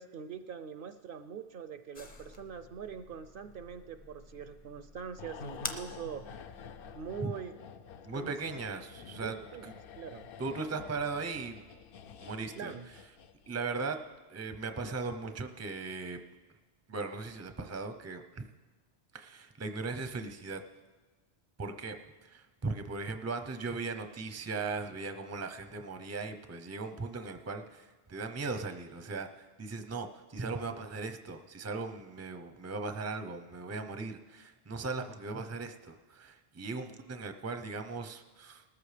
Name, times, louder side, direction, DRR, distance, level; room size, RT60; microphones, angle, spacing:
voice 1, 0.0-6.2 6.9-7.5 8.1-8.4 9.2-9.7 10.0-10.3 12.6-12.9, right 7 dB, 60° right, 10 dB, 0.7 m, -43 dB
sound 1, 1.9-7.2, left 2 dB, 30° left, 0.9 m, -47 dB
sound 2, 5.2-13.7 14.0-14.2, left 6 dB, 65° left, 0.7 m, -49 dB
voice 2, 8.0-9.4 9.6-9.7 10.4-11.6 12.2-12.7 13.5-14.0 14.3-16.2 16.9-18.5 19.1-20.6 21.6-38.6, right 3 dB, 20° right, 7 dB, 0.5 m, -38 dB
20.0 x 13.5 x 3.3 m, 1.3 s
omnidirectional pair, 1.1 m